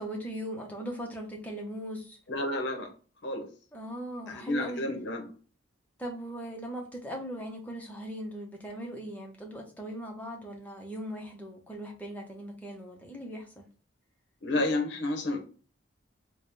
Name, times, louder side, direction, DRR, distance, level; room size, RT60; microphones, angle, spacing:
voice 1, 0.0-2.2 3.7-4.9 6.0-13.7, right 1 dB, 10° left, 0 dB, 0.8 m, -39 dB
voice 2, 2.3-2.9 3.2-3.5 4.3-5.3 14.4-15.4, left 2 dB, 65° left, 3 dB, 0.8 m, -30 dB
3.4 x 2.2 x 4.1 m, 0.39 s
head